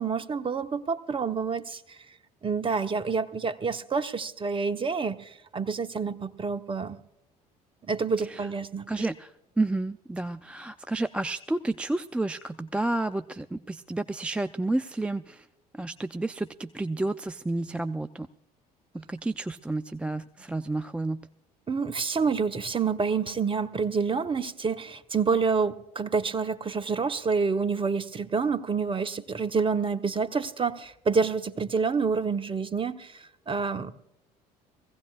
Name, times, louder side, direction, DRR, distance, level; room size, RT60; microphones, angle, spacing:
voice 1, 0.0-2.0 2.4-7.0 7.8-9.1 21.7-33.9, right 5 dB, 25° right, 11 dB, 1.0 m, -28 dB
voice 2, 8.9-15.5 15.7-18.3 18.9-21.3, right 2 dB, 5° right, 10 dB, 0.4 m, -31 dB
22.0 x 16.5 x 2.4 m, 0.84 s
figure-of-eight pair, 60°, 20 cm